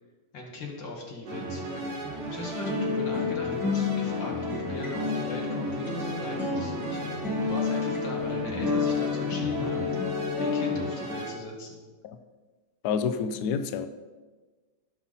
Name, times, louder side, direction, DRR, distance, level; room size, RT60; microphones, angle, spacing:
voice 1, 0.3-10.1 10.4-11.8, left 3 dB, 60° left, -1 dB, 2.6 m, -40 dB
sound 1, 1.3-11.3, right 2 dB, 85° right, 2.7 m, -35 dB
sound 2, 2.6-10.9, left 5 dB, ahead, 3.1 m, -30 dB
voice 2, 12.8-13.9, left 6 dB, 80° left, 10 dB, 0.8 m, -28 dB
16.0 x 5.8 x 4.1 m, 1.3 s
omnidirectional pair, 2.4 m